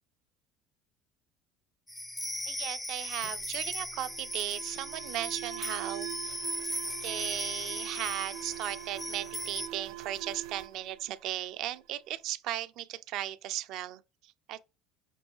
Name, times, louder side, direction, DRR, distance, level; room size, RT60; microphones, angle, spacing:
sound 1, 1.9-9.7, left 1 dB, 10° left, 0.4 m, -38 dB
voice 1, 2.5-6.4 7.0-14.6, right 13 dB, 60° right, 0.3 m, -37 dB
Alarm, 3.2-11.8, right 13 dB, 80° right, 0.7 m, -44 dB
5.2 x 2.8 x 3.1 m
hypercardioid pair, 75°, 0 cm